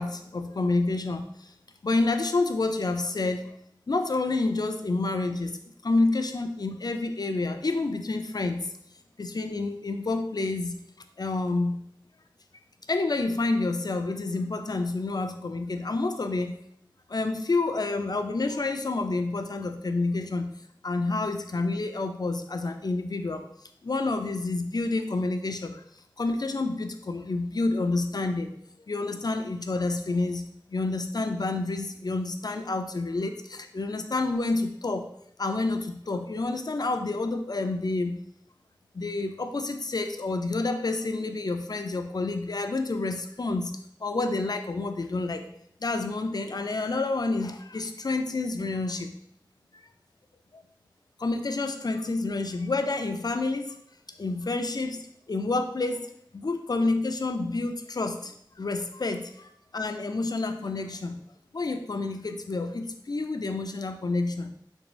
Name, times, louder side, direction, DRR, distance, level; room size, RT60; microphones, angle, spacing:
voice 1, 0.0-1.5 1.8-3.5 3.9-8.7 9.2-10.7 11.2-11.8 12.9-16.5 17.1-20.5 20.8-23.4 23.8-25.8 26.2-28.5 28.9-35.1 35.4-38.2 38.9-43.7 44.0-45.5 45.8-49.1 49.7-49.8 50.5-50.6 51.2-53.8 54.2-58.3 58.6-61.2 61.5-64.5, left 3 dB, 55° left, 7 dB, 0.3 m, -29 dB
3.6 x 2.6 x 3.0 m, 0.71 s
wide cardioid pair, 40°, 8 cm